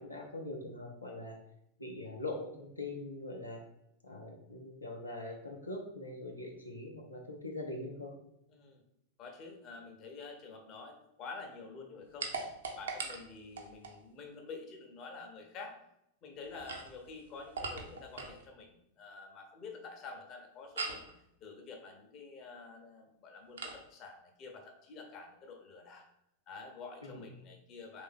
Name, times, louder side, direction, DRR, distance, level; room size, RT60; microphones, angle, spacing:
voice 1, 0.0-1.4 1.8-3.6 4.0-8.1 27.0-27.3, left 2 dB, 85° left, 0 dB, 0.6 m, -42 dB
voice 2, 8.5-8.8 9.2-12.3 12.7-15.8 16.2-21.1 21.4-26.1 26.5-28.0, left 4 dB, 35° left, 2 dB, 0.7 m, -48 dB
sound 1, 12.2-14.0 16.5-18.4 20.8-21.1 23.6-23.8, right 4 dB, 65° right, 0.5 m, -41 dB
3.3 x 2.6 x 3.6 m, 0.81 s
figure-of-eight pair, 90°, 0 cm